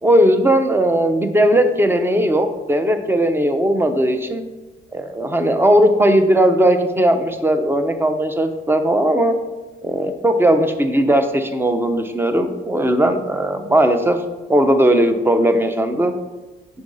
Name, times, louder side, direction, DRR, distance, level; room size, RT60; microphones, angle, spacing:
voice 1, 0.0-4.5 4.9-9.4 9.8-14.2 14.5-16.1, right 1 dB, 10° right, 7 dB, 0.6 m, -17 dB
5.3 x 3.5 x 5.3 m, 1.2 s
cardioid pair, 90°, 20 cm